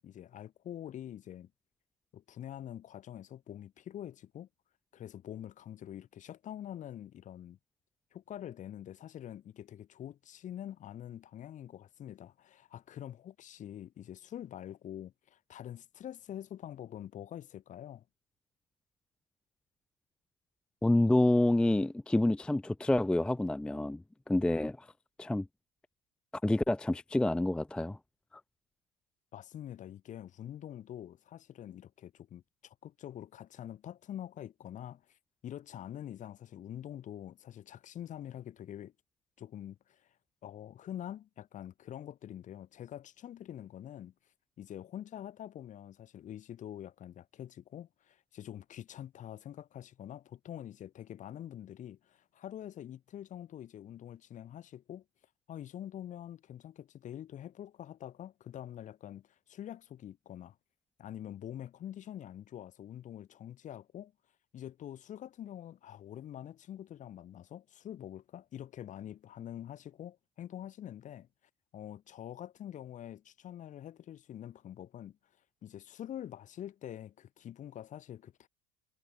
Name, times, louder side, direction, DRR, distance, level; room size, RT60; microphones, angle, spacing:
voice 1, 0.0-1.5 2.1-4.5 4.9-7.6 8.1-18.0 29.3-35.2 35.4-38.9 39.4-40.1 40.4-44.1 44.6-55.0 55.5-60.6 61.0-64.1 64.5-71.3 71.7-75.2 75.6-78.5, left 11 dB, 40° left, 1.1 m, -45 dB
voice 2, 20.8-24.9 25.2-25.5 26.4-28.0, left 1 dB, 5° left, 0.4 m, -28 dB
hypercardioid pair, 75°, 20 cm